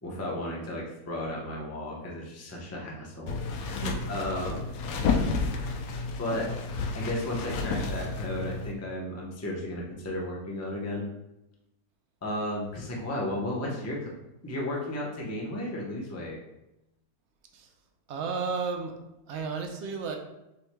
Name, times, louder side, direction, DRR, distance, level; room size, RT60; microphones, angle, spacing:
voice 1, 0.0-3.8 4.1-4.7 6.2-6.5 6.9-11.1 12.2-14.1 14.4-16.4, left 1 dB, 20° left, -2 dB, 0.4 m, -34 dB
sound 1, 3.3-8.7, left 4 dB, 70° left, 0.9 m, -31 dB
voice 2, 3.6-4.0 4.3-4.4 17.5-17.7 18.1-18.9 19.3-20.2, right 5 dB, 65° right, 3 dB, 0.7 m, -33 dB
6.9 x 3.2 x 2.2 m, 0.91 s
omnidirectional pair, 1.8 m